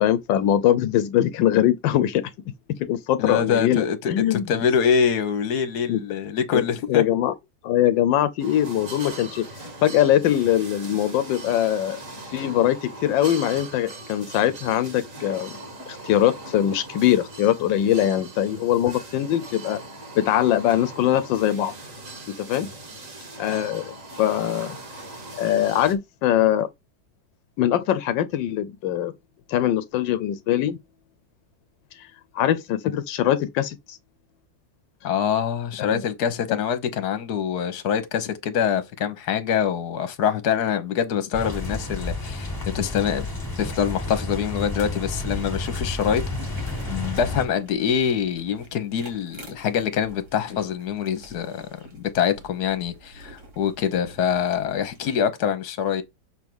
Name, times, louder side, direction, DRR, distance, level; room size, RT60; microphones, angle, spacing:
voice 1, 0.0-2.2 2.9-4.5 5.9-6.0 6.5-7.3 7.6-12.0 12.3-15.6 15.9-19.8 20.1-21.7 22.4-22.7 23.4-24.8 25.4-26.7 27.6-29.1 29.5-30.8 31.9-32.1 32.3-34.0 35.8-36.0 36.5-36.6, left 11 dB, 85° left, 1.3 m, -22 dB
voice 2, 3.2-7.0 35.0-42.5 42.7-43.2 43.6-46.2 46.9-51.6 52.1-56.0, left 7 dB, 65° left, 1.5 m, -24 dB
sound 1, 8.4-25.9, right 2 dB, 45° right, 2.1 m, -40 dB
sound 2, 41.3-47.4, left 2 dB, 15° left, 1.4 m, -31 dB
sound 3, 46.2-55.2, right 2 dB, 65° right, 3.2 m, -46 dB
6.5 x 3.5 x 6.1 m
omnidirectional pair, 1.9 m